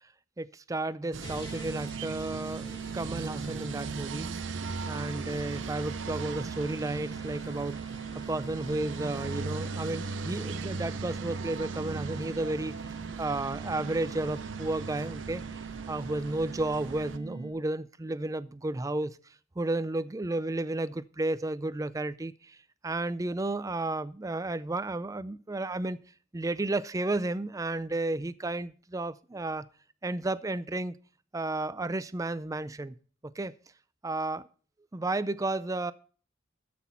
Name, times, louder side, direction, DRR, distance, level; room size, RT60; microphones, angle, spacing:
voice 1, 0.4-4.3 4.9-7.8 8.3-19.2 19.6-22.6 22.8-26.0 26.3-29.7 30.0-30.9 31.3-33.0 33.3-33.5 34.0-34.5 34.9-35.9, right 2 dB, 15° right, 0.4 m, -32 dB
sound 1, 1.1-17.2, right 3 dB, 80° right, 0.8 m, -39 dB
sound 2, 1.2-17.5, right 7 dB, 25° left, 4.3 m, -42 dB
13.5 x 6.1 x 5.6 m
head